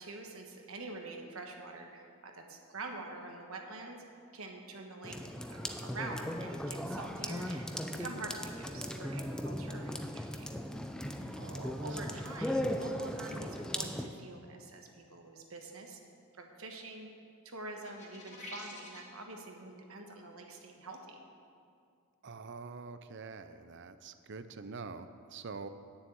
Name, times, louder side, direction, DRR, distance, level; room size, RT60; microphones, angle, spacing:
voice 1, 0.0-4.0 4.3-10.5 11.8-16.0 16.4-17.1 17.4-21.2, right 2 dB, 70° right, 3 dB, 1.3 m, -46 dB
sound 1, 5.0-14.1, equal, 5° left, 0.4 m, -38 dB
voice 2, 11.4-12.2 22.2-25.7, right 4 dB, 55° right, 11 dB, 0.6 m, -46 dB
sound 2, 17.8-19.2, left 1 dB, 30° left, 2.0 m, -47 dB
9.5 x 7.2 x 8.7 m, 2.3 s
head